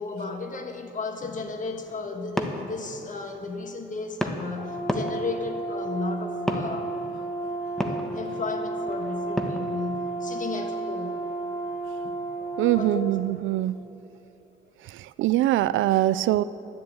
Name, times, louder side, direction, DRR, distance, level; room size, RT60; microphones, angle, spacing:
voice 1, 0.0-6.9 7.8-11.2 12.0-12.2 12.7-13.1, left 4 dB, 40° left, 5 dB, 1.5 m, -34 dB
sound 1, 1.6-13.7, equal, ahead, 1.2 m, -37 dB
Brass instrument, 4.6-13.0, right 2 dB, 20° left, 2.3 m, -32 dB
voice 2, 12.6-13.8 15.2-16.4, right 14 dB, 80° right, 16 dB, 0.4 m, -22 dB
12.0 x 7.7 x 8.5 m, 3.0 s
cardioid pair, 90°, 20 cm